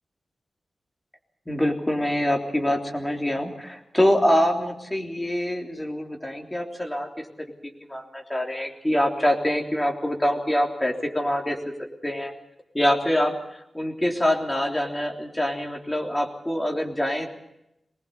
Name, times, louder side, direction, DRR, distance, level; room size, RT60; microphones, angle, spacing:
voice 1, 1.5-7.3 7.6-11.6 12.0-12.3 12.7-17.3, equal, 10° left, 1 dB, 3.5 m, -25 dB
24.0 x 20.0 x 7.0 m, 0.84 s
wide cardioid pair, 160°, 0 cm